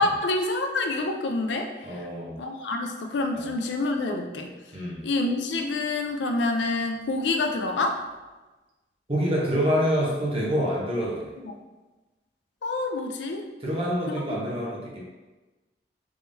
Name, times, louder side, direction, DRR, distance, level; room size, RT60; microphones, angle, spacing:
voice 1, 0.0-2.1 2.4-4.5 5.0-8.0 12.6-13.5 14.1-14.2, left 2 dB, 85° left, 4 dB, 0.4 m, -27 dB
voice 2, 1.8-2.4 3.3-3.5 4.7-5.0 9.1-11.3 13.6-15.0, equal, 30° right, -4 dB, 0.8 m, -26 dB
3.6 x 3.3 x 2.6 m, 1.2 s
head